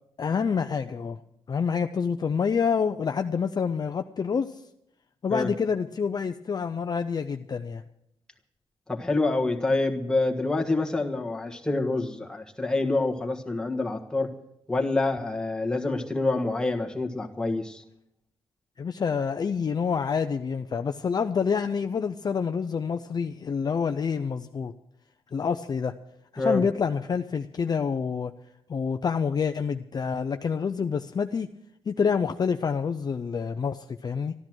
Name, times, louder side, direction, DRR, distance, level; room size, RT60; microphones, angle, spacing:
voice 1, 0.2-1.2 1.5-4.6 5.2-7.8 18.8-24.7 25.3-25.9 26.3-28.3 28.7-31.5 31.9-34.3, left 6 dB, 40° left, 8 dB, 0.5 m, -27 dB
voice 2, 8.9-14.3 14.7-17.8 26.4-26.6, left 2 dB, 5° left, 1 dB, 1.6 m, -27 dB
13.5 x 13.0 x 6.2 m, 0.77 s
wide cardioid pair, 140°, 11 cm